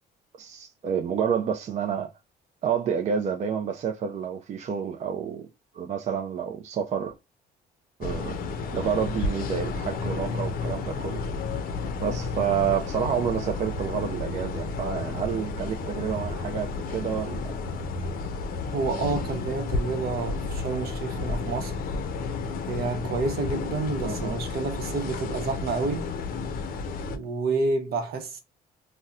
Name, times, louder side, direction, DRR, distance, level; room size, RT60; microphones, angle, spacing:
voice 1, 0.4-2.1 2.6-5.5 5.7-7.1 8.0-8.3 8.7-11.2 12.0-17.5 24.0-24.4, right 7 dB, 45° right, 0.4 m, -29 dB
sound 1, 8.0-27.2, left 4 dB, 55° left, 0.5 m, -32 dB
voice 2, 18.6-21.8 22.7-26.1 27.1-28.4, right 4 dB, 65° right, 0.8 m, -29 dB
4.0 x 2.1 x 2.4 m
cardioid pair, 110°, 17 cm